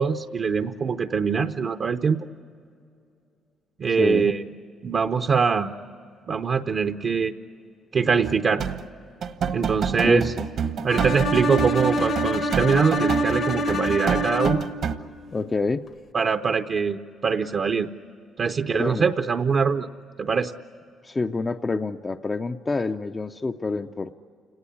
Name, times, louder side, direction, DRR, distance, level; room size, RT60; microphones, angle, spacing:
voice 1, 0.0-2.3 3.8-4.4 4.8-5.7 6.3-7.3 7.9-8.6 9.5-10.3 10.8-14.6 16.1-17.9 18.4-19.9 20.2-20.5, right 5 dB, 45° right, 6 dB, 0.7 m, -23 dB
sound 1, 8.2-8.9 9.2-15.0, right 7 dB, 60° right, 1.2 m, -29 dB
voice 2, 10.0-10.5 15.3-15.8 18.7-19.1 21.0-24.1, left 3 dB, 25° left, 6 dB, 0.5 m, -27 dB
Bowed string instrument, 10.9-14.9, equal, 55° left, 1.3 m, -25 dB
29.5 x 18.5 x 9.9 m, 2.5 s
cardioid pair, 120°, 0 cm